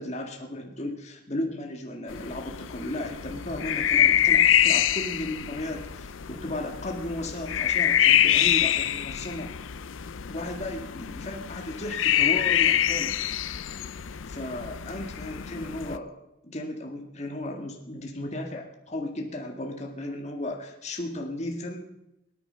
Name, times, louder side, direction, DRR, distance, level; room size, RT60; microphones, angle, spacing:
voice 1, 0.0-9.5 10.3-13.1 14.0-16.1 16.4-21.9, left 1 dB, 35° left, 2 dB, 1.9 m, -35 dB
sound 1, 2.1-16.0, left 11 dB, 75° left, 0.6 m, -25 dB
22.0 x 9.6 x 5.7 m, 0.89 s
head